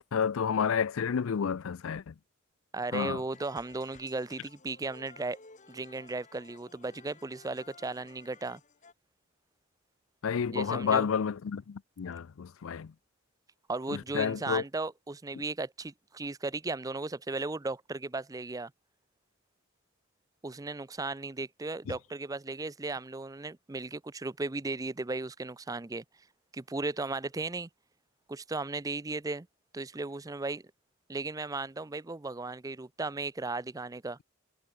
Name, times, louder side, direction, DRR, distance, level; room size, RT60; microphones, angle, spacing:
voice 1, 0.0-2.1 2.9-3.2 10.2-12.9 13.9-14.6 21.9-22.0, left 6 dB, 80° left, 0.4 m, -30 dB
voice 2, 2.7-5.4 5.7-8.6 10.5-11.1 13.7-18.7 20.4-26.0 26.5-27.7 28.3-29.5 29.7-30.6 31.1-34.2, right 3 dB, 15° right, 0.5 m, -36 dB
sound 1, 3.3-8.9, left 4 dB, 35° left, 2.5 m, -55 dB
head